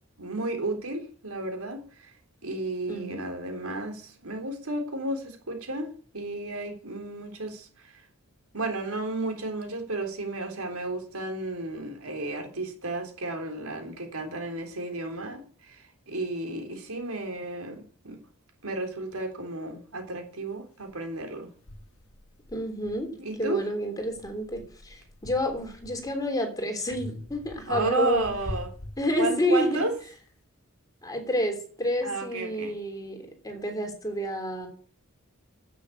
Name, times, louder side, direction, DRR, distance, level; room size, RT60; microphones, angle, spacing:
voice 1, 0.2-2.1 2.4-8.0 8.5-18.2 18.6-21.5 23.2-23.6 27.7-28.7 29.2-29.9 32.0-32.7, right 2 dB, 90° right, 3.7 m, -33 dB
voice 2, 2.9-3.2 22.5-23.1 23.4-28.3 29.0-29.8 31.0-34.7, left 1 dB, 15° left, 3.3 m, -29 dB
sound 1, 20.9-21.0 21.7-23.5 24.0-26.3 26.9-29.7, left 1 dB, 80° left, 1.4 m, -43 dB
10.0 x 8.8 x 8.5 m
head